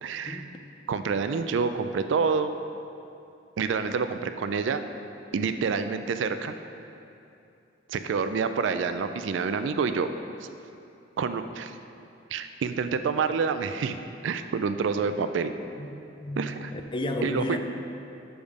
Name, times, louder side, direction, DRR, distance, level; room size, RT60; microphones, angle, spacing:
voice 1, 0.0-0.4 0.9-2.5 3.6-4.8 5.3-6.6 7.9-10.1 11.2-11.8 12.3-14.0 14.2-15.5 16.4-16.7 17.2-17.6, right 5 dB, 70° right, 9 dB, 0.3 m, -27 dB
voice 2, 15.8-16.5 16.7-17.6, left 1 dB, 25° left, 5 dB, 0.4 m, -32 dB
7.1 x 5.0 x 5.2 m, 2.7 s
head